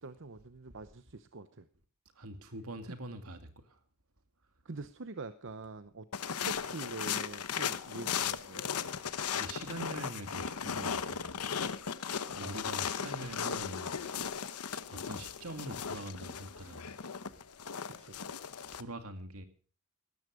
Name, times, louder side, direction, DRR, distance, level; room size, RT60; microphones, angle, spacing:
voice 1, 0.0-1.7 4.6-6.1 6.5-8.7 12.4-12.6 17.8-18.2, right 3 dB, 55° right, 11 dB, 0.8 m, -45 dB
voice 2, 2.2-3.8 9.0-11.5 12.3-14.0 14.7-17.0 18.7-19.5, right 1 dB, 75° right, 8 dB, 2.4 m, -44 dB
sound 1, 6.1-18.8, left 7 dB, 85° left, 1.0 m, -37 dB
18.0 x 13.0 x 5.0 m, 0.42 s
head